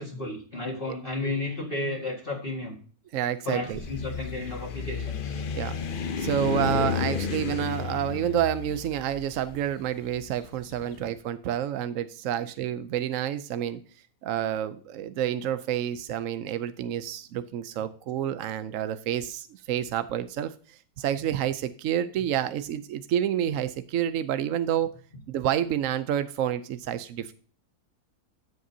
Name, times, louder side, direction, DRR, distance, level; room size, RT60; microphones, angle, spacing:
voice 1, 0.0-2.8 3.5-5.4 10.9-11.0, left 2 dB, 35° left, -2 dB, 2.0 m, -33 dB
voice 2, 3.1-3.8 5.5-5.8 6.2-13.8 14.2-24.9 25.3-27.3, right 10 dB, 65° right, 12 dB, 0.8 m, -29 dB
sound 1, 3.6-10.8, left 6 dB, 50° left, 0.6 m, -32 dB
14.0 x 7.5 x 2.7 m, 0.42 s
omnidirectional pair, 1.7 m